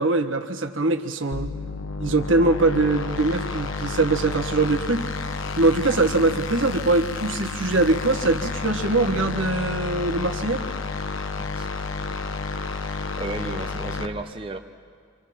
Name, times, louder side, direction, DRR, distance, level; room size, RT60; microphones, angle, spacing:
voice 1, 0.0-1.5 2.0-5.0 5.6-10.6, right 2 dB, 70° right, 6 dB, 1.4 m, -22 dB
sound 1, 1.3-14.1, left 4 dB, 75° left, 1.1 m, -30 dB
voice 2, 13.1-14.6, right 2 dB, 25° right, 4 dB, 0.8 m, -33 dB
28.0 x 25.5 x 5.9 m, 2.1 s
head